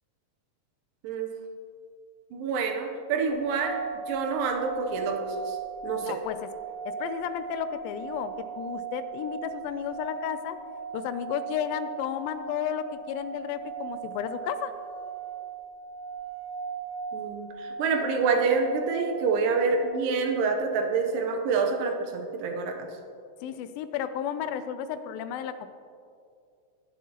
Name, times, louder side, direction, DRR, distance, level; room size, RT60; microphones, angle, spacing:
voice 1, 2.3-3.8 4.1-5.6 5.8-6.2 17.1-22.9, right 4 dB, 75° right, 4 dB, 2.4 m, -27 dB
sound 1, 3.3-20.5, right 6 dB, 65° left, 0.8 m, -38 dB
voice 2, 6.0-6.5 6.9-10.6 10.9-14.7 23.4-25.7, left 9 dB, 85° left, 11 dB, 2.3 m, -33 dB
19.0 x 7.4 x 2.9 m, 2.4 s
omnidirectional pair, 4.2 m